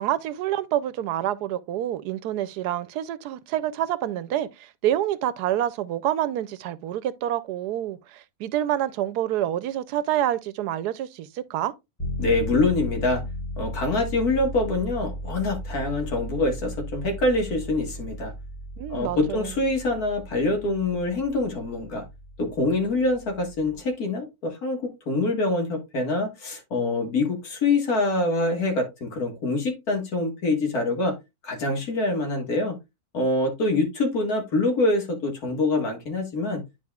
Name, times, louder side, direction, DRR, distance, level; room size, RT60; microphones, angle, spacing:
voice 1, 0.0-11.7 18.8-19.5, right 12 dB, 90° right, 1.2 m, -27 dB
sound 1, 12.0-23.9, equal, 20° left, 1.5 m, -36 dB
voice 2, 12.2-13.2 13.6-18.3 18.9-22.0 22.4-24.8 25.1-31.1 31.4-32.8 33.1-36.6, left 2 dB, 70° left, 2.1 m, -25 dB
10.5 x 4.7 x 2.3 m
omnidirectional pair, 1.7 m